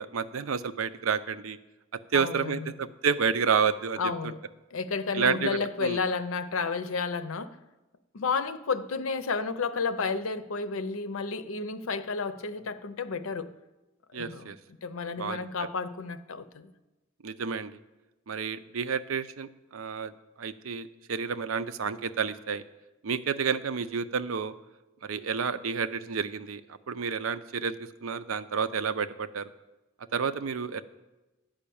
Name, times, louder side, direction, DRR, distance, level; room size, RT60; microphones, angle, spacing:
voice 1, 0.0-1.6 2.1-4.0 5.1-6.0 14.1-14.6 15.2-15.5 17.2-17.7 18.3-22.6 23.0-24.5 25.0-27.8 28.0-29.5 30.1-30.8, right 6 dB, 75° right, 12 dB, 0.5 m, -30 dB
voice 2, 2.1-2.7 4.0-4.4 4.7-7.6 8.1-13.5 14.1-14.5 14.8-16.7, left 4 dB, 75° left, 12 dB, 0.6 m, -31 dB
11.5 x 5.6 x 8.5 m, 1.1 s
head